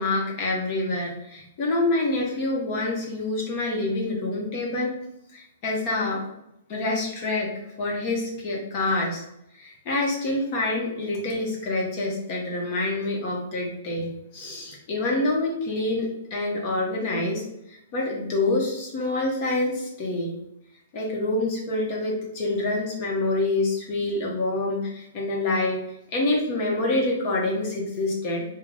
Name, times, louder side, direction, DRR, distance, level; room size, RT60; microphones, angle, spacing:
voice 1, 0.0-4.9 5.3-6.2 6.7-7.5 7.8-9.2 9.5-20.3 20.9-25.8 26.1-28.5, left 2 dB, 40° left, -2 dB, 0.9 m, -26 dB
3.4 x 2.2 x 3.8 m, 0.82 s
hypercardioid pair, 145°, 0 cm